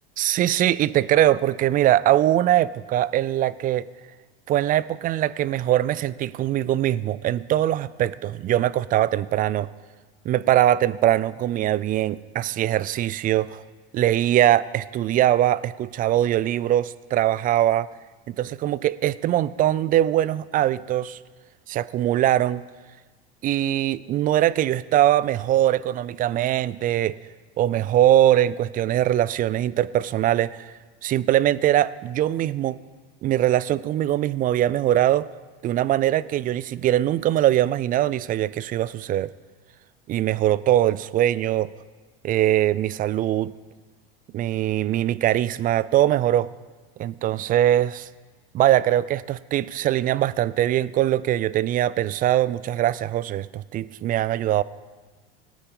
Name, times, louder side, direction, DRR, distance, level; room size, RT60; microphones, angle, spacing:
voice 1, 0.2-3.9 4.5-9.7 10.3-13.6 13.9-17.9 18.3-21.2 21.7-22.6 23.4-27.2 27.6-30.7 31.0-32.8 33.2-35.3 35.6-39.3 40.1-41.7 42.2-43.5 44.3-46.5 47.0-48.1 48.5-54.6, right 13 dB, 30° right, 19 dB, 0.3 m, -22 dB
18.0 x 8.8 x 3.8 m, 1.4 s
hypercardioid pair, 90°, 30 cm